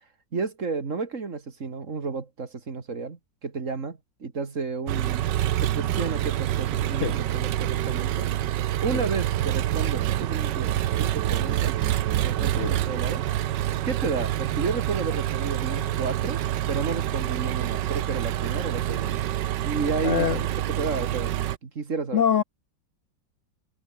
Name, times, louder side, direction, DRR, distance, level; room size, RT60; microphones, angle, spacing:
voice 1, 0.3-5.2 5.6-8.3 8.8-11.8 12.2-13.2 13.8-16.4 16.7-19.2 19.6-22.2, right 4 dB, 45° right, 2.4 m, -32 dB
Engine, 4.9-21.6, right 12 dB, 75° right, 1.5 m, -27 dB
voice 2, 20.0-20.4 22.1-22.4, left 8 dB, 55° left, 0.9 m, -23 dB
omnidirectional pair, 1.9 m